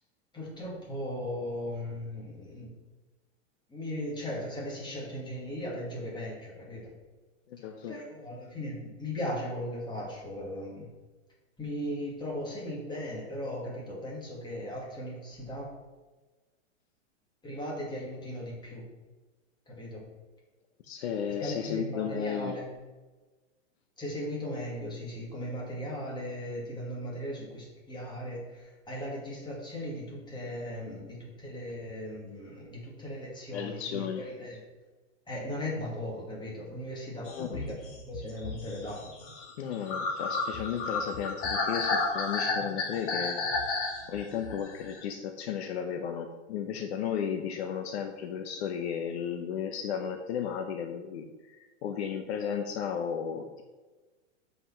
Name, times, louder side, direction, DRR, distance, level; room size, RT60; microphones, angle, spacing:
voice 1, 0.3-2.7 3.7-6.9 7.6-10.9 11.6-15.7 17.4-18.8 19.7-20.0 21.3-22.7 24.0-34.6 35.3-39.0, left 1 dB, 10° left, -3 dB, 2.5 m, -37 dB
voice 2, 7.5-8.0 20.8-22.6 33.5-34.3 37.3-37.5 39.6-43.4 44.1-53.6, left 8 dB, 60° left, 5 dB, 1.0 m, -34 dB
sound 1, 37.3-45.0, left 3 dB, 35° left, 1.9 m, -32 dB
7.6 x 5.5 x 5.8 m, 1.2 s
hypercardioid pair, 135°, 37 cm